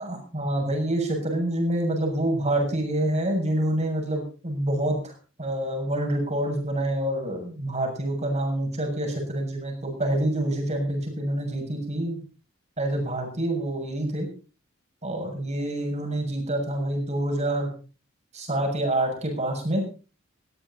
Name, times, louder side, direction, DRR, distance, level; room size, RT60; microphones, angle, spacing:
voice 1, 0.0-5.1 5.4-12.2 12.8-14.3 15.0-17.7 18.3-19.8, right 1 dB, 35° right, 3 dB, 6.9 m, -27 dB
18.5 x 16.0 x 4.2 m, 0.36 s
head